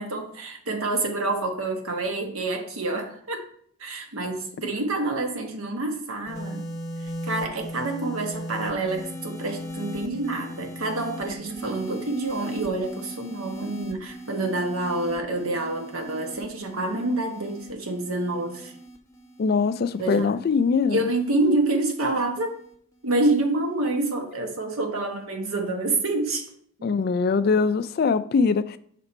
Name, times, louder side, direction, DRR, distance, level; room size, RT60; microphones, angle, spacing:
voice 1, 0.0-3.4 3.8-6.7 7.0-18.7 20.0-20.4 20.9-22.6 23.0-26.4 26.8-26.9, right 2 dB, 85° right, 1.1 m, -27 dB
sound 1, 6.3-22.7 23.6-24.0, right 1 dB, 15° left, 0.7 m, -39 dB
voice 2, 19.4-21.0 26.8-28.8, left 5 dB, 45° left, 0.3 m, -22 dB
5.8 x 4.2 x 4.3 m
head